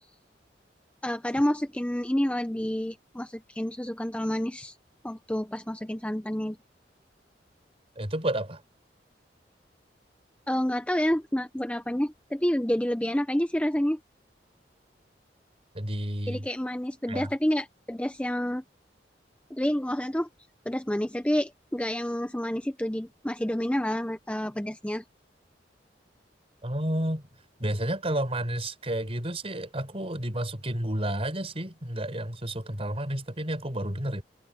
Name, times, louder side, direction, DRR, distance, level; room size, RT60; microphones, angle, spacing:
voice 1, 1.0-4.8 5.0-6.6 10.5-14.0 16.3-18.6 19.5-20.3 20.7-25.0, equal, 5° left, 0.8 m, -29 dB
voice 2, 8.0-8.6 15.7-16.4 17.1-17.3 26.6-27.2 27.6-34.2, right 1 dB, 35° right, 5.3 m, -31 dB
head